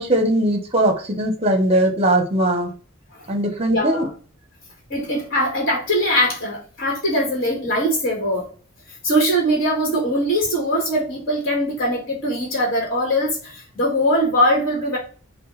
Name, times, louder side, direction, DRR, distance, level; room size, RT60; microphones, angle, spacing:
voice 1, 0.0-2.7 3.3-4.0, right 1 dB, 30° right, 5 dB, 0.8 m, -19 dB
voice 2, 3.7-4.1 4.9-8.5 9.0-15.0, equal, 45° left, -3 dB, 1.5 m, -21 dB
5.2 x 2.2 x 3.1 m, 0.40 s
head